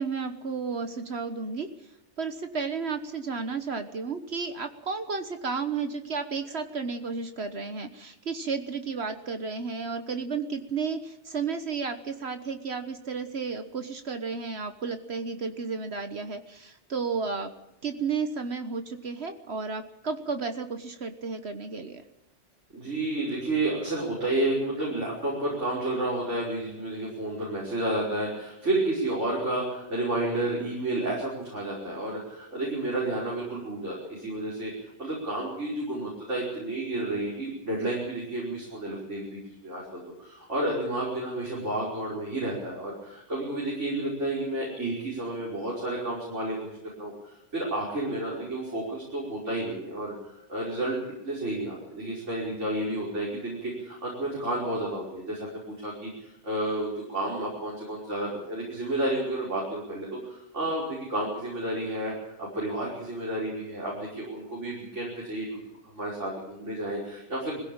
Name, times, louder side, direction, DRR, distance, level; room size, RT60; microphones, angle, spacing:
voice 1, 0.0-1.7 2.2-17.5 17.8-22.0, right 5 dB, 60° right, 8 dB, 1.5 m, -32 dB
voice 2, 22.7-62.1 62.4-67.6, right 1 dB, 85° right, -5 dB, 5.7 m, -31 dB
21.5 x 16.0 x 8.8 m, 0.88 s
omnidirectional pair, 1.2 m